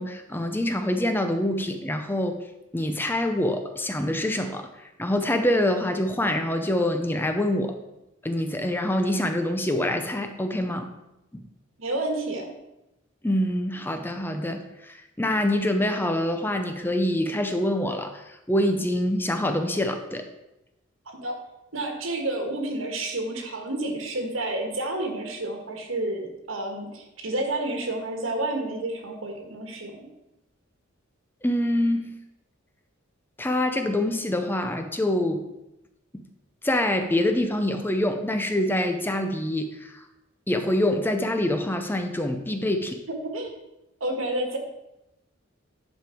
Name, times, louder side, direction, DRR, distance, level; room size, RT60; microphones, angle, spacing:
voice 1, 0.0-2.4 2.7-7.8 8.2-10.9 11.3-11.4 13.2-20.3 31.4-32.1 33.4-35.4 36.1-36.2 36.6-40.0 40.5-43.0, left 1 dB, 10° left, 7 dB, 0.5 m, -25 dB
voice 2, 11.8-12.5 21.0-21.4 21.7-30.1 43.1-43.5 44.0-44.6, right 2 dB, 75° right, 3 dB, 1.6 m, -30 dB
10.5 x 5.1 x 4.5 m, 0.92 s
head